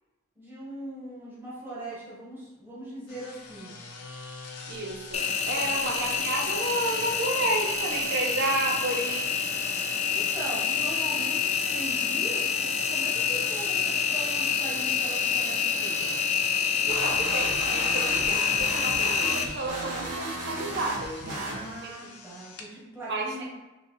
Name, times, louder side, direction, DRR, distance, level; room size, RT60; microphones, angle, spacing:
voice 1, 0.4-3.7 5.7-5.8 10.1-16.2 21.3-23.5, right 1 dB, 10° right, -9 dB, 0.9 m, -40 dB
sound 1, 3.1-22.7, left 4 dB, 85° left, 0.6 m, -45 dB
voice 2, 4.7-9.3 16.9-21.4 21.8-22.0 23.1-23.3, right 2 dB, 50° right, 1 dB, 0.6 m, -31 dB
Engine, 5.1-19.4, left 6 dB, 30° left, 0.3 m, -27 dB
sound 2, 16.9-22.1, right 2 dB, 90° right, 0.8 m, -35 dB
3.1 x 2.6 x 4.0 m, 1.1 s
head